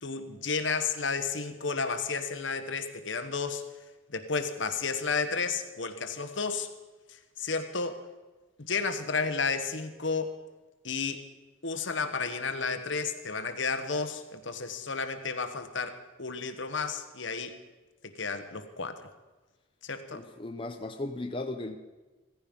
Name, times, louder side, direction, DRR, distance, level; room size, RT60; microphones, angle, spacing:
voice 1, 0.0-3.6 4.1-6.7 7.4-8.0 8.7-10.3 10.8-11.2 11.6-17.5 18.0-19.0 19.8-20.2, left 4 dB, 70° left, 9 dB, 1.4 m, -32 dB
voice 2, 20.1-21.8, left 2 dB, 25° left, 5 dB, 0.8 m, -36 dB
16.5 x 15.5 x 5.4 m, 1.2 s
head